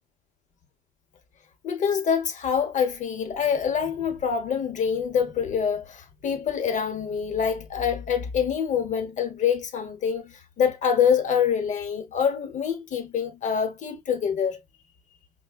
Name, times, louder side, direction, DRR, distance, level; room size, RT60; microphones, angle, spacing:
voice 1, 1.6-14.6, left 7 dB, 45° left, 1.0 m, -25 dB
5.5 x 2.2 x 2.4 m
cardioid pair, 110°, 17 cm